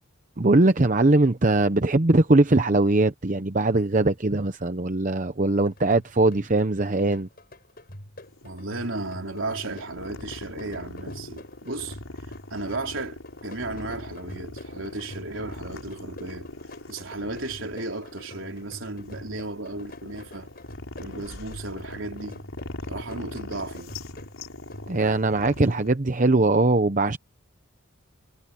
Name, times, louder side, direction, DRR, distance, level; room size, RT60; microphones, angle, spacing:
voice 1, 0.4-7.3 24.9-27.2, right 2 dB, 40° right, 0.8 m, -21 dB
sound 1, 5.6-25.3, left 1 dB, 45° left, 5.6 m, -47 dB
sound 2, 8.2-25.9, left 2 dB, 85° left, 4.0 m, -41 dB
voice 2, 8.4-12.0 12.5-16.5 16.9-20.5 21.0-22.4 22.9-23.9, right 2 dB, 70° right, 4.1 m, -35 dB
head